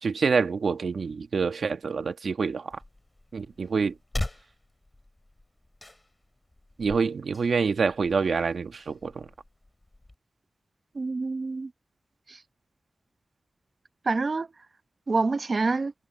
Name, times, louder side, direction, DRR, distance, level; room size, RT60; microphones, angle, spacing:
voice 1, 0.0-2.8 3.3-3.9 6.8-9.3, right 5 dB, 85° right, 1.4 m, -26 dB
sound 1, 2.7-10.2, left 1 dB, 25° left, 4.5 m, -41 dB
voice 2, 10.9-11.7 12.3-12.4 14.0-14.5 15.1-15.9, right 3 dB, 55° right, 1.0 m, -27 dB
wide cardioid pair, 70°, 0 cm